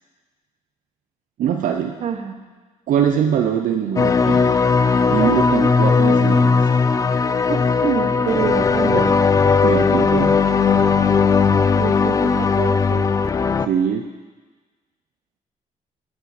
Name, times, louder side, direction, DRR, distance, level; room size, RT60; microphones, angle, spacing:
voice 1, 1.4-2.0 2.9-4.4 5.1-6.7 9.6-10.4 13.7-14.0, right 8 dB, 70° right, 5 dB, 0.6 m, -22 dB
voice 2, 2.0-2.4 7.5-9.1 11.8-13.1, right 7 dB, 50° right, 7 dB, 0.9 m, -26 dB
sound 1, 4.0-13.7, left 5 dB, 25° left, 0.3 m, -17 dB
12.0 x 9.9 x 4.2 m, 1.4 s
cardioid pair, 140°, 14 cm